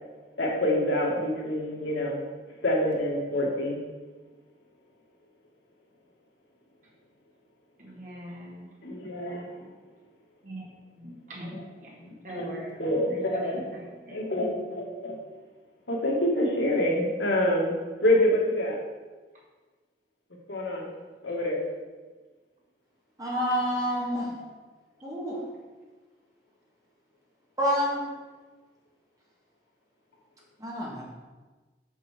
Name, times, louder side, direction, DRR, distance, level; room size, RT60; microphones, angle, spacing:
voice 1, 0.4-2.2 2.6-3.8 8.8-9.7 11.4-11.6 12.0-13.7 14.1-15.2 15.9-18.8 20.5-20.9 21.2-21.6, left 1 dB, 85° left, -2 dB, 1.8 m, -27 dB
voice 2, 7.8-8.7 10.4-10.6 11.0-12.0 12.2-12.7 13.1-14.2, equal, 45° right, -5 dB, 2.2 m, -41 dB
voice 3, 23.2-24.3 25.0-25.4 27.6-28.0 30.6-31.0, equal, 20° right, -4 dB, 1.9 m, -28 dB
5.8 x 5.5 x 6.4 m, 1.3 s
head